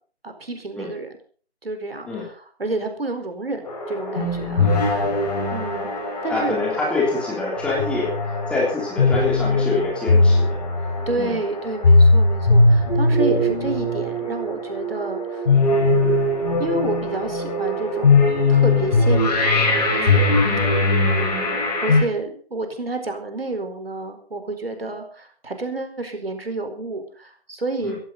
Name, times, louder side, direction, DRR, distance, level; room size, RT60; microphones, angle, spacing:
voice 1, 0.2-1.1 1.6-2.1 2.6-4.7 5.0-5.9 6.2-6.6 11.1-15.4 15.7-16.3 16.6-20.7 21.0-27.9, right 2 dB, 65° right, 6 dB, 4.7 m, -30 dB
sound 1, 3.7-22.0, left 2 dB, 40° left, 5.5 m, -20 dB
voice 2, 6.3-8.2 8.5-10.6 11.2-11.4 27.8-28.0, left 3 dB, 5° left, -4 dB, 3.3 m, -25 dB
17.5 x 14.5 x 4.1 m, 0.44 s
figure-of-eight pair, 150°, 32 cm